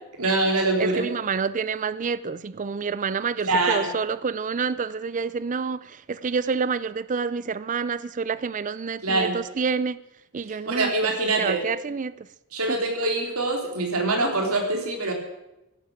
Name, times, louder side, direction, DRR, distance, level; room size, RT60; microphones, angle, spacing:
voice 1, 0.2-1.0 3.4-3.9 9.0-9.4 10.7-11.6 12.5-15.1, right 2 dB, 70° right, 3.5 m, -24 dB
voice 2, 0.8-10.0 10.3-11.1 11.4-12.3 12.7-12.8, right 5 dB, 35° right, 0.4 m, -28 dB
16.5 x 11.5 x 6.4 m
head